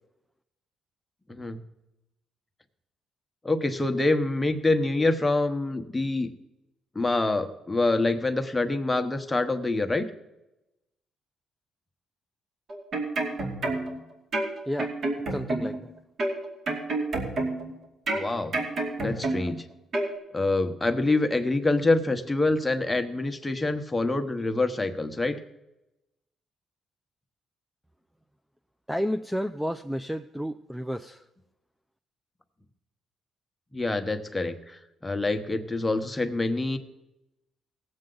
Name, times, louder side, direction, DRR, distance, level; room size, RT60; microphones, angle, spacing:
voice 1, 1.3-1.6 3.4-6.3 6.9-10.0 18.1-18.5 19.0-19.7 20.3-25.4 33.7-36.8, left 2 dB, 15° left, 6 dB, 1.0 m, -26 dB
sound 1, 12.7-14.0 14.3-15.8 16.2-17.7 18.1-19.6 19.9-20.1, right 2 dB, 60° right, 2.5 m, -29 dB
voice 2, 15.3-15.9 28.9-31.2, equal, 5° right, 9 dB, 0.4 m, -31 dB
18.0 x 7.7 x 3.9 m, 0.95 s
cardioid pair, 90°, 0 cm